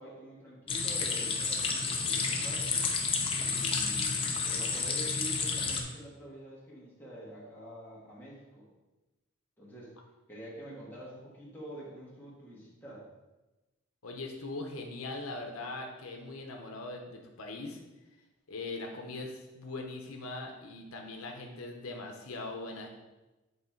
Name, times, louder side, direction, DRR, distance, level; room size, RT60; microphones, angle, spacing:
voice 1, 0.0-2.8 3.4-8.7 9.6-10.0 10.3-13.1, right 1 dB, 10° left, -7 dB, 1.8 m, -47 dB
sound 1, 0.7-5.8, left 4 dB, 25° left, 0.6 m, -31 dB
voice 2, 14.0-17.8 18.5-22.9, left 2 dB, 85° left, 2 dB, 0.8 m, -41 dB
7.9 x 3.3 x 4.5 m, 1.1 s
head